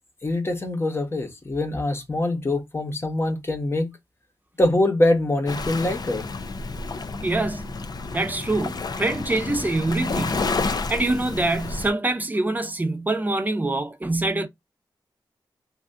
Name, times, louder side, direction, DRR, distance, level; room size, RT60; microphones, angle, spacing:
voice 1, 0.2-3.9 4.6-6.2, left 1 dB, 30° left, 1.0 m, -24 dB
Waves surf, 5.5-11.9, left 3 dB, 55° left, 0.5 m, -30 dB
voice 2, 7.2-7.6 8.1-10.5 10.9-14.5, right 2 dB, 20° right, 0.7 m, -25 dB
2.7 x 2.4 x 3.3 m
wide cardioid pair, 85°, 8 cm